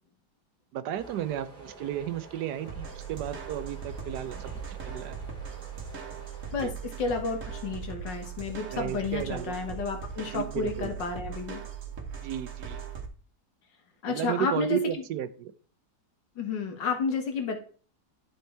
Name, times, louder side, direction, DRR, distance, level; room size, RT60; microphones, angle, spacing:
voice 1, 0.7-5.2 6.6-6.7 8.7-9.5 10.3-10.9 12.2-12.8 14.1-15.5, right 10 dB, 70° right, 14 dB, 1.1 m, -33 dB
sound 1, 0.9-6.5, right 3 dB, 5° left, 2.7 m, -48 dB
sound 2, 2.7-13.1, right 6 dB, 50° right, 1.5 m, -39 dB
voice 2, 6.5-11.6 14.0-14.8 16.4-17.6, left 4 dB, 75° left, 5 dB, 2.1 m, -31 dB
11.0 x 4.5 x 4.3 m, 0.42 s
omnidirectional pair, 1.9 m